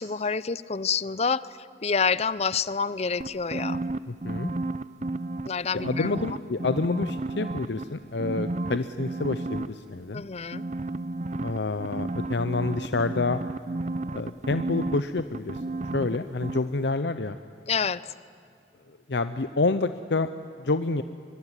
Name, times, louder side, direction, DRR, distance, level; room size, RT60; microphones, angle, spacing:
voice 1, 0.0-3.8 5.4-6.1 10.1-10.7 17.7-18.1, left 5 dB, 35° left, 18 dB, 0.6 m, -28 dB
sound 1, 3.2-5.5 5.8-7.8 8.2-9.7 10.5-16.2 16.4-16.6, right 2 dB, 40° right, 0.7 m, -32 dB
voice 2, 4.1-4.5 5.8-10.2 11.4-13.4 14.1-15.6 15.9-17.4 19.1-20.3 20.6-21.0, left 3 dB, 75° left, 10 dB, 0.7 m, -28 dB
23.5 x 23.5 x 9.9 m, 2.4 s
head